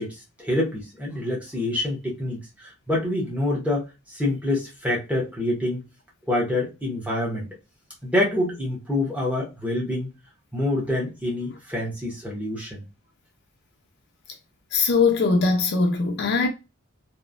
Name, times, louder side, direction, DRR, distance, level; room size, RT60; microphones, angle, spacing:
voice 1, 0.0-5.8 6.3-7.5 8.0-10.1 10.5-12.8, left 1 dB, 5° right, 0.8 m, -26 dB
voice 2, 14.7-16.5, left 4 dB, 45° left, 0.4 m, -21 dB
2.9 x 2.0 x 2.4 m
head